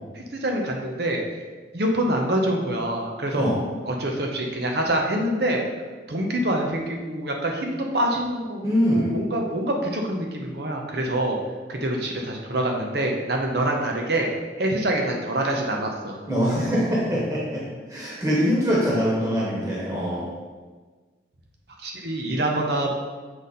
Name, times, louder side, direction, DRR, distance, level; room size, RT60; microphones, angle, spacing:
voice 1, 0.1-1.4 1.7-3.5 3.8-5.6 6.1-11.4 11.7-14.3 14.6-16.2 21.8-22.9, right 1 dB, 55° right, 1 dB, 0.9 m, -25 dB
voice 2, 8.6-9.1 16.3-17.6 17.9-20.3, equal, 15° right, -6 dB, 1.3 m, -23 dB
6.9 x 4.0 x 4.2 m, 1.4 s
head